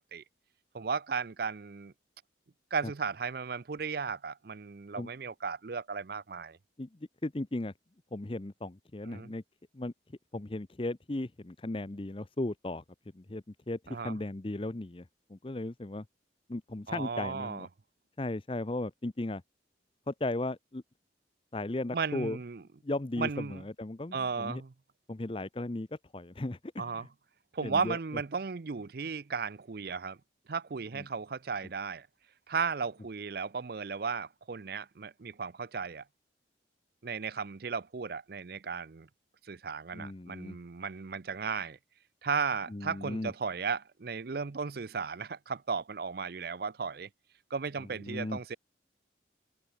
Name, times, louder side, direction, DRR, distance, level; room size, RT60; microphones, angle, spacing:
voice 1, 0.7-1.9 2.7-6.6 9.1-9.3 13.9-14.2 16.9-17.7 21.9-22.6 23.2-23.6 24.1-24.7 26.8-27.1 27.5-30.2 30.5-32.1 32.5-36.0 37.0-39.1 39.4-41.8 42.2-47.1 47.5-48.6, right 5 dB, 55° right, 0.5 m, -35 dB
voice 2, 7.2-7.7 8.1-9.4 9.7-9.9 10.3-12.8 13.1-15.0 15.3-16.0 16.5-17.7 18.2-19.4 20.1-20.8 21.5-22.4 22.8-24.6 25.1-25.9 26.1-27.1 27.6-28.0 30.9-31.0 39.9-40.6 42.7-43.3 48.0-48.4, left 2 dB, 30° left, 0.7 m, -36 dB
head